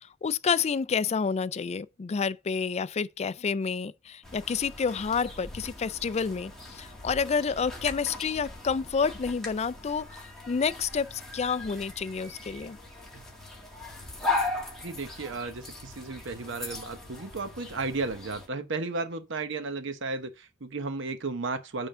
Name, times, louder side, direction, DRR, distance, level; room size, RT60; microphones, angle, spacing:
voice 1, 0.2-12.8, left 5 dB, 35° left, 0.4 m, -29 dB
sound 1, 4.2-18.5, left 2 dB, 5° left, 1.8 m, -38 dB
voice 2, 14.8-21.9, right 3 dB, 65° right, 0.9 m, -34 dB
8.9 x 3.6 x 5.6 m
head